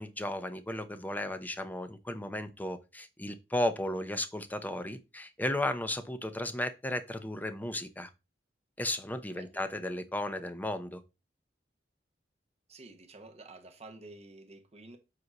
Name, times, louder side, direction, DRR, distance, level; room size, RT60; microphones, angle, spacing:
voice 1, 0.0-8.1 8.8-11.0, left 1 dB, 10° left, 0.7 m, -34 dB
voice 2, 12.7-15.0, right 2 dB, 35° right, 1.0 m, -50 dB
7.9 x 2.7 x 5.9 m
head